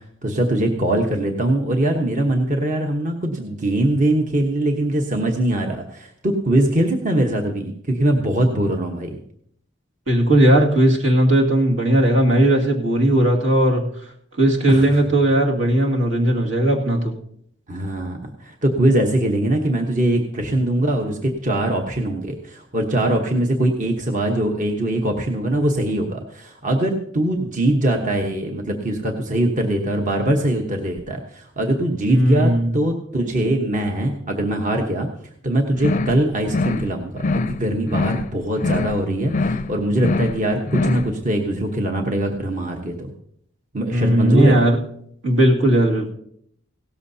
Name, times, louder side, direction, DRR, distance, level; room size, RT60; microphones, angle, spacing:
voice 1, 0.2-9.2 14.7-15.0 17.7-35.1 35.4-43.1 43.7-44.6, right 1 dB, 40° right, 2 dB, 1.1 m, -22 dB
voice 2, 10.1-13.9 14.4-17.1 32.1-32.7 43.9-44.8 45.2-46.1, right 1 dB, 75° right, 0 dB, 2.1 m, -17 dB
sound 1, 35.8-36.2 36.5-36.9 37.2-37.6 37.9-38.3 38.6-39.0 39.3-39.7 40.0-40.4 40.7-41.1, left 3 dB, 40° left, 0.4 m, -23 dB
17.0 x 13.5 x 2.8 m, 0.67 s
head